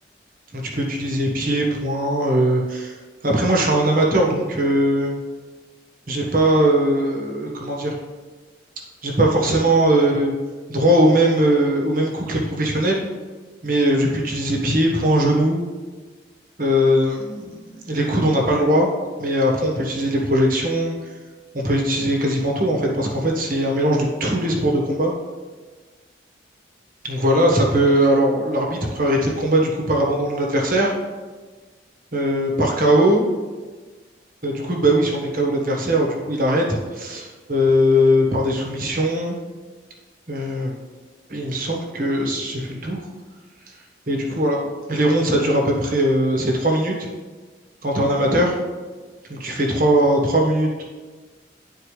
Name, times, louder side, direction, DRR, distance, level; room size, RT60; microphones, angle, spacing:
voice 1, 0.5-2.9 3.2-5.2 6.1-8.0 9.0-10.3 10.7-13.0 13.6-15.6 16.6-18.9 19.2-20.9 21.5-25.1 27.0-30.9 32.1-33.2 34.4-36.7 36.9-39.4 40.3-40.7 41.3-43.0 44.1-44.6 44.9-47.1 47.8-48.5 49.3-50.8, equal, 50° right, -1 dB, 1.3 m, -20 dB
11.5 x 4.4 x 3.3 m, 1.4 s
head